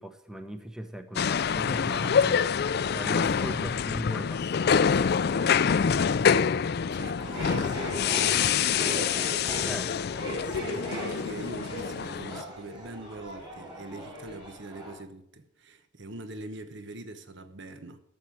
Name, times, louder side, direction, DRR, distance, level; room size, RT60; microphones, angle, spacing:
voice 1, 0.0-5.7 9.7-10.0, equal, 5° right, 0.8 m, -39 dB
sound 1, 1.2-12.4, left 7 dB, 50° left, 0.4 m, -26 dB
voice 2, 6.9-8.0 8.2-9.3 10.5-18.0, right 2 dB, 60° right, 1.1 m, -43 dB
sound 2, 7.2-14.9, equal, 25° right, 4.8 m, -38 dB
12.0 x 7.4 x 8.3 m
head